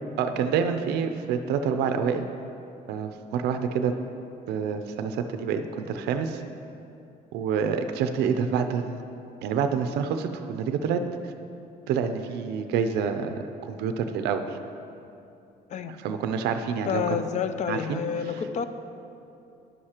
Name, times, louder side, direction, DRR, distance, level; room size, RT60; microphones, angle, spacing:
voice 1, 0.2-2.3 2.9-3.9 4.5-6.4 7.3-9.0 9.4-11.3 11.9-13.3 13.6-14.6 16.0-17.2 17.7-18.0, right 6 dB, 75° right, 7 dB, 0.5 m, -27 dB
voice 2, 16.9-18.7, left 7 dB, 45° left, 10 dB, 0.4 m, -29 dB
11.0 x 6.4 x 2.9 m, 2.7 s
cardioid pair, 110°, 17 cm